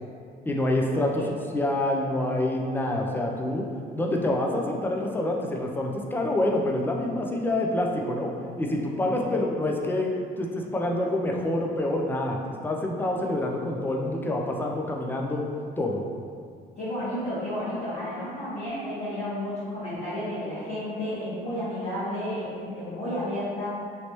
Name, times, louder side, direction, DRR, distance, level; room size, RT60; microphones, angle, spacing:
voice 1, 0.5-3.7 3.9-12.4 12.6-15.5 15.8-16.0, left 1 dB, 10° left, 0 dB, 0.4 m, -27 dB
voice 2, 9.2-9.6 16.7-23.7, left 1 dB, 40° left, -12 dB, 1.4 m, -32 dB
3.1 x 2.9 x 2.9 m, 2.2 s
cardioid pair, 110°, 17 cm